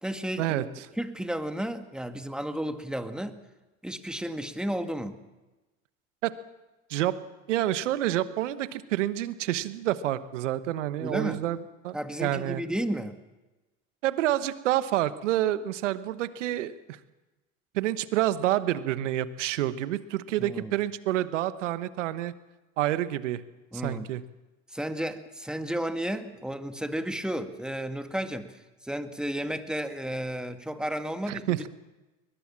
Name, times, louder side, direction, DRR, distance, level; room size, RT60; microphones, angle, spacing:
voice 1, 0.0-3.4 3.8-5.2 11.0-11.4 11.9-13.2 20.4-20.7 23.7-24.1 24.7-31.7, right 1 dB, ahead, 7 dB, 2.0 m, -33 dB
voice 2, 7.5-12.6 14.0-17.0 17.7-22.3 22.8-23.4 23.8-24.2 31.3-31.7, right 13 dB, 85° right, 14 dB, 1.2 m, -28 dB
21.5 x 21.5 x 7.4 m, 1.1 s
hypercardioid pair, 75°, 36 cm